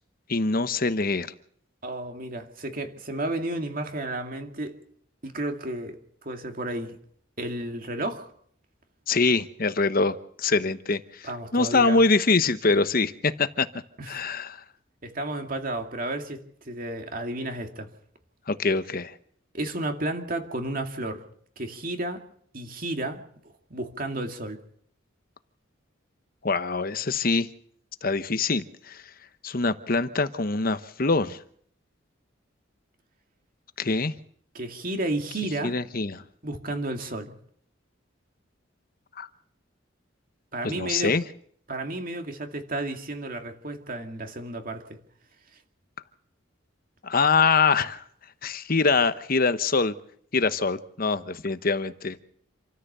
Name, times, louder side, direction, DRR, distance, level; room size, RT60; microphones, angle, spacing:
voice 1, 0.3-1.3 9.1-13.7 14.1-14.6 18.5-19.1 26.4-27.5 28.0-29.0 29.4-31.4 33.8-34.1 35.6-36.2 39.2-39.3 40.6-41.2 47.0-48.0 48.4-49.9 50.3-52.2, left 4 dB, 45° left, 1.0 m, -24 dB
voice 2, 1.8-4.8 5.2-6.0 6.2-7.0 7.4-8.3 11.2-12.0 14.0-14.2 15.0-17.9 19.5-21.3 21.6-22.2 22.5-23.2 23.7-24.6 34.5-35.8 36.4-37.3 40.5-41.1 41.7-44.8, right 1 dB, 45° right, 2.3 m, -32 dB
27.5 x 13.5 x 6.8 m
head